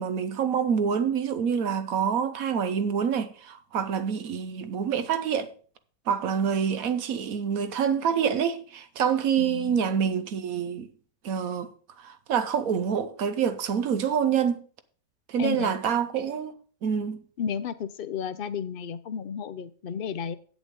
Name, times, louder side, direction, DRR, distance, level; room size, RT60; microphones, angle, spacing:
voice 1, 0.0-5.5 6.1-10.9 11.2-11.7 12.0-14.6 15.3-16.5 16.8-17.2, right 7 dB, 75° right, 1.2 m, -26 dB
voice 2, 9.4-9.9 15.4-15.7 17.4-20.4, left 7 dB, 55° left, 0.6 m, -33 dB
8.3 x 8.2 x 5.1 m
omnidirectional pair, 1.5 m